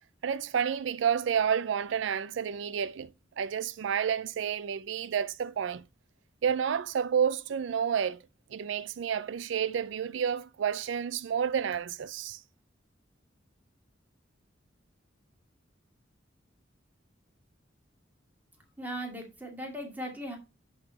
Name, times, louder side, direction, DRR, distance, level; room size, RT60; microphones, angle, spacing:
voice 1, 0.2-3.1 3.4-5.8 6.4-8.2 8.5-12.4, right 7 dB, 75° right, 0.4 m, -30 dB
voice 2, 18.8-20.4, equal, 10° right, 2.2 m, -38 dB
11.0 x 4.7 x 4.0 m
head